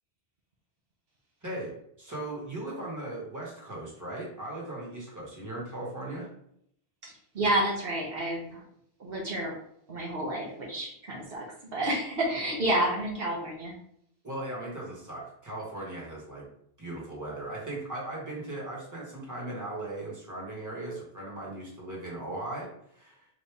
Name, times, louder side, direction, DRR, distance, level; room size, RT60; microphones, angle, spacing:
voice 1, 1.4-1.7 2.0-6.3 14.2-16.5 16.8-23.3, right 2 dB, 20° right, -4 dB, 1.4 m, -38 dB
voice 2, 7.0-8.6 9.0-9.5 9.9-11.4 11.7-13.7, right 1 dB, 70° right, -3 dB, 1.1 m, -30 dB
4.0 x 3.2 x 3.4 m, 0.70 s
omnidirectional pair, 1.0 m